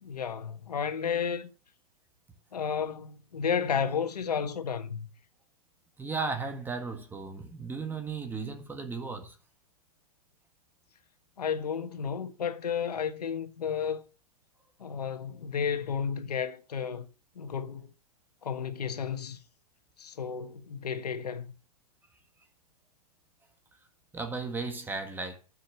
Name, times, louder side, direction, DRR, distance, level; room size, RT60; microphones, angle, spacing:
voice 1, 0.0-1.5 2.5-5.1 11.4-14.0 14.8-17.1 17.4-17.9 18.4-19.4 20.0-21.5, left 7 dB, 90° left, 1.4 m, -32 dB
voice 2, 6.0-9.4 24.1-25.4, right 4 dB, 10° right, 1.6 m, -35 dB
11.5 x 6.4 x 6.5 m
hypercardioid pair, 140°, 20 cm